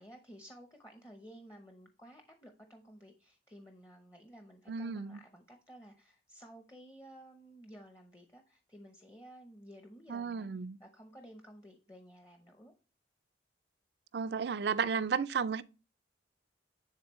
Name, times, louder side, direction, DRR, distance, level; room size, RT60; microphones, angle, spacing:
voice 1, 0.0-10.5 10.8-12.7, equal, 15° left, 0.7 m, -54 dB
voice 2, 4.7-5.2 10.1-10.8 14.1-15.6, right 6 dB, 55° right, 0.4 m, -33 dB
10.5 x 3.9 x 3.0 m
head